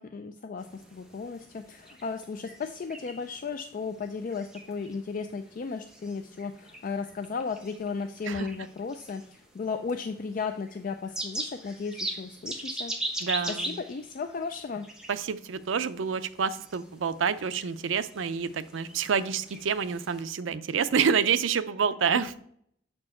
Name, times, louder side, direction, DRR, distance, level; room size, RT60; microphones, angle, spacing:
voice 1, 0.0-12.9 13.5-14.8, left 5 dB, 45° left, 7 dB, 0.4 m, -35 dB
sound 1, 0.6-20.2, right 1 dB, 5° right, 1.0 m, -42 dB
voice 2, 13.2-13.8 15.1-22.4, right 6 dB, 85° right, 13 dB, 0.5 m, -28 dB
7.1 x 4.4 x 4.3 m, 0.67 s
head